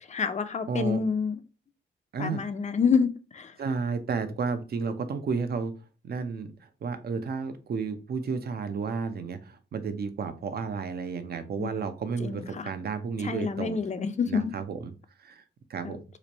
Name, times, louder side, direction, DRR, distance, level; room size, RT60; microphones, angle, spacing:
voice 1, 0.1-1.4 2.2-3.5 11.6-11.7 12.2-12.7 13.2-14.4 15.8-16.0, left 5 dB, 35° left, 0.5 m, -28 dB
voice 2, 0.7-1.0 2.1-2.4 3.6-5.7 6.0-13.8 14.3-14.9 15.2-15.4 15.7-16.0, right 5 dB, 55° right, 0.6 m, -32 dB
3.1 x 2.5 x 4.0 m
cardioid pair, 100°, 20 cm